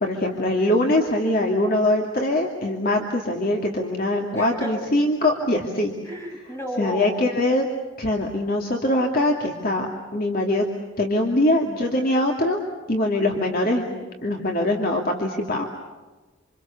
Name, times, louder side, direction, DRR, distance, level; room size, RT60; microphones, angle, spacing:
voice 1, 0.0-5.9 6.8-7.7 8.0-9.9 10.1-10.6 11.0-12.6 12.9-15.7, left 1 dB, 45° left, 1 dB, 2.6 m, -22 dB
voice 2, 4.3-4.7 6.0-7.2, equal, 15° left, 0 dB, 7.1 m, -33 dB
28.0 x 27.5 x 7.1 m, 1.2 s
head